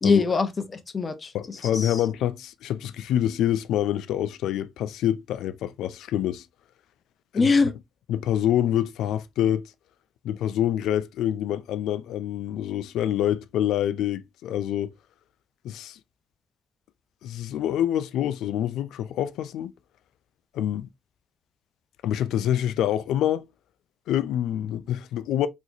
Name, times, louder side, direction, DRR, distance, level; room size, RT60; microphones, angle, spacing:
voice 1, 0.0-2.0 7.3-7.7, left 4 dB, 35° left, 0.7 m, -23 dB
voice 2, 1.3-6.4 7.3-7.5 8.1-9.7 10.2-14.9 15.6-16.0 17.2-19.7 20.5-20.9 22.0-23.5 24.1-25.5, left 11 dB, 85° left, 0.3 m, -26 dB
3.9 x 3.0 x 2.5 m
cardioid pair, 90°, 0 cm